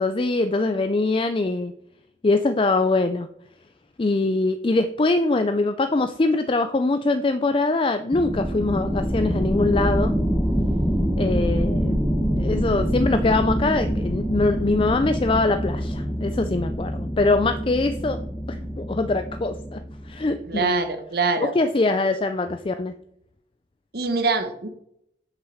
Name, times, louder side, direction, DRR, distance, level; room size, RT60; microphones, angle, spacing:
voice 1, 0.0-1.7 2.2-3.3 4.0-10.1 11.2-12.0 12.3-18.2 18.5-20.8 21.4-22.9, left 3 dB, 30° left, 9 dB, 0.4 m, -23 dB
sound 1, 8.1-20.4, equal, 5° left, 1.2 m, -25 dB
voice 2, 20.5-21.5 23.9-24.7, right 3 dB, 60° right, 7 dB, 1.1 m, -24 dB
7.4 x 6.3 x 6.4 m, 0.73 s
head